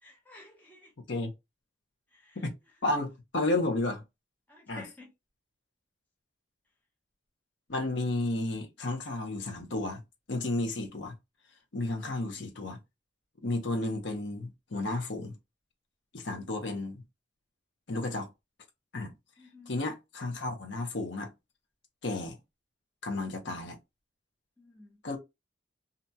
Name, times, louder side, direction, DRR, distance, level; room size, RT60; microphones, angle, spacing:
voice 1, 0.0-0.9 2.1-2.4 4.5-5.1 12.0-12.1 16.3-16.6 19.4-19.7 24.6-25.0, left 2 dB, 10° left, 0.7 m, -53 dB
voice 2, 2.8-4.0 4.7-4.8 7.7-10.0 10.3-11.1 11.7-12.8 13.4-15.3 16.1-17.0 17.9-18.3 18.9-19.1 19.7-21.3 22.0-22.4 23.0-23.8 25.0-25.2, left 2 dB, 75° left, 0.8 m, -32 dB
2.6 x 2.2 x 2.7 m
head